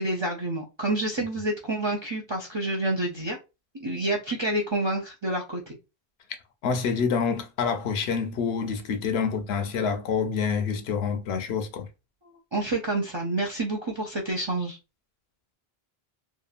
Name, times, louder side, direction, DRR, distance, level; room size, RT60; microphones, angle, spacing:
voice 1, 0.0-3.4 3.8-5.8 12.5-14.8, right 2 dB, 40° right, 0.4 m, -28 dB
voice 2, 6.6-11.9, left 6 dB, 75° left, 0.8 m, -27 dB
2.8 x 2.3 x 2.4 m
omnidirectional pair, 1.1 m